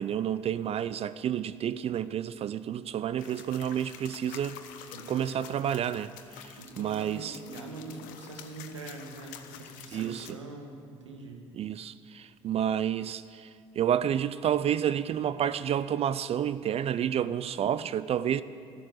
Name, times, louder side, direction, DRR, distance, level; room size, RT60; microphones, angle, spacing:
voice 1, 0.0-7.4 9.9-10.3 11.5-18.4, right 9 dB, 45° right, 0.5 m, -30 dB
sound 1, 3.2-10.3, left 10 dB, 65° left, 1.1 m, -48 dB
voice 2, 4.9-5.4 6.6-11.5, right 3 dB, 90° right, 1.5 m, -43 dB
13.5 x 11.5 x 7.7 m
hypercardioid pair, 55°, 15 cm